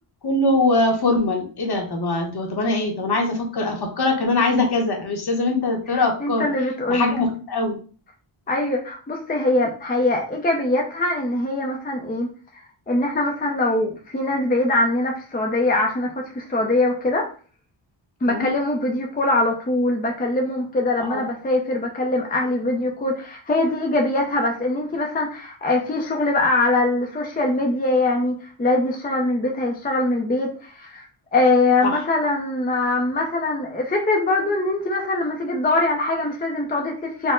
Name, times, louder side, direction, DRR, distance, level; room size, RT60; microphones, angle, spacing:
voice 1, 0.2-6.5 6.9-7.8 18.2-18.5 21.0-21.2 31.8-31.9, left 2 dB, 50° left, 3 dB, 0.9 m, -22 dB
voice 2, 6.2-7.2 8.5-12.3 12.9-17.3 18.2-37.3, left 2 dB, 20° left, 1 dB, 0.5 m, -22 dB
4.3 x 2.1 x 3.6 m, 0.40 s
wide cardioid pair, 150°, 48 cm